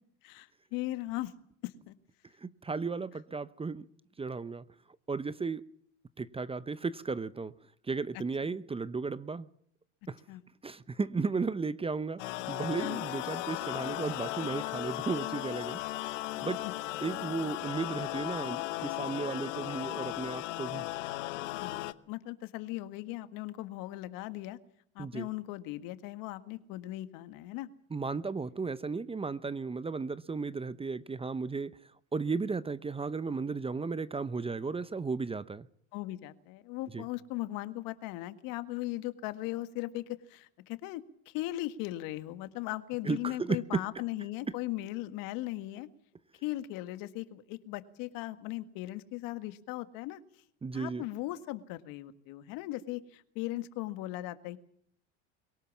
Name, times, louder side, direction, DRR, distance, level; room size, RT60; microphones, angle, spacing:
voice 1, 0.2-1.3 1.6-1.9 10.3-10.4 12.8-13.1 16.6-16.7 21.6-24.6 25.0-27.7 35.9-45.9 46.4-50.2 50.7-54.6, left 16 dB, 65° left, 1.8 m, -38 dB
voice 2, 2.4-3.8 4.2-4.6 5.1-5.6 6.2-7.5 7.9-9.5 10.1-10.2 10.6-12.2 12.5-15.8 16.3-16.6 17.0-20.9 25.0-25.3 27.9-31.7 32.1-35.7 36.9-37.0 43.0-43.8 50.6-51.0, right 4 dB, 15° right, 0.8 m, -34 dB
sound 1, 12.2-21.9, left 17 dB, 80° left, 1.0 m, -36 dB
22.5 x 18.0 x 7.3 m
hypercardioid pair, 85°, 36 cm